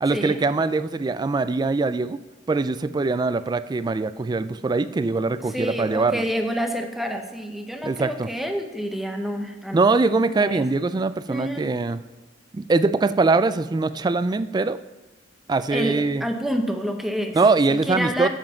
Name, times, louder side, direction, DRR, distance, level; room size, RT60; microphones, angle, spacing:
voice 1, 0.0-2.2 2.5-6.2 7.8-8.3 9.7-12.0 12.5-14.8 15.5-16.2 17.3-18.3, right 3 dB, 20° right, 14 dB, 0.3 m, -22 dB
voice 2, 5.5-10.1 10.3-10.6 11.3-11.7 15.7-17.4 17.7-18.3, equal, ahead, 4 dB, 0.9 m, -28 dB
7.7 x 7.3 x 5.9 m, 1.1 s
head